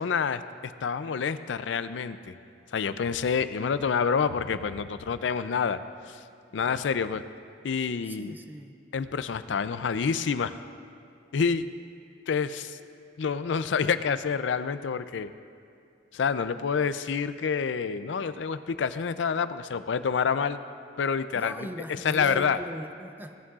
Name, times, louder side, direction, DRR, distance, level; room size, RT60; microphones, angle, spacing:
voice 1, 0.0-2.3 2.7-5.8 6.1-6.2 6.5-7.2 7.6-8.3 8.9-10.6 11.3-11.7 12.3-12.8 13.2-15.3 16.1-20.6 21.0-21.7 22.0-22.6, left 6 dB, 80° left, 12 dB, 0.4 m, -28 dB
voice 2, 8.0-8.8 21.3-23.4, equal, 10° right, 6 dB, 0.5 m, -39 dB
18.0 x 11.0 x 2.4 m, 2.4 s
head